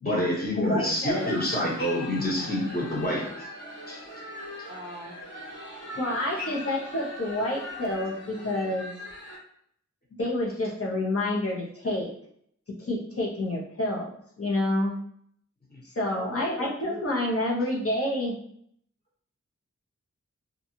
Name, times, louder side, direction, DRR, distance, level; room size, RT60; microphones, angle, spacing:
voice 1, 0.0-3.3 3.9-4.0 15.7-15.8, left 1 dB, 30° left, -4 dB, 1.1 m, -27 dB
voice 2, 0.5-1.3 6.0-8.9 10.2-12.1 12.8-14.1 14.4-15.0 15.9-18.4, left 1 dB, 50° left, -4 dB, 0.8 m, -28 dB
sound 1, 1.1-9.4, left 1 dB, 75° left, 1.4 m, -40 dB
voice 3, 4.7-5.2 16.1-17.0, right 1 dB, 15° right, -3 dB, 0.5 m, -40 dB
2.6 x 2.3 x 2.8 m, 0.66 s
wide cardioid pair, 55°, 30 cm